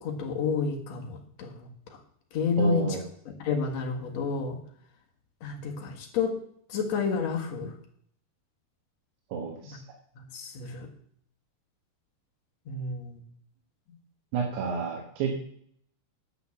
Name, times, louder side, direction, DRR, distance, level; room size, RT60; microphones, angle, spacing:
voice 1, 0.0-1.7 2.3-3.0 3.4-4.6 5.4-6.4 6.7-7.7 9.6-9.8 10.2-10.9 12.7-13.2, left 5 dB, 50° left, 2 dB, 2.3 m, -30 dB
voice 2, 2.6-3.0 9.3-9.8 14.3-15.3, right 5 dB, 80° right, 0 dB, 3.5 m, -30 dB
10.5 x 5.9 x 7.1 m, 0.65 s
omnidirectional pair, 4.6 m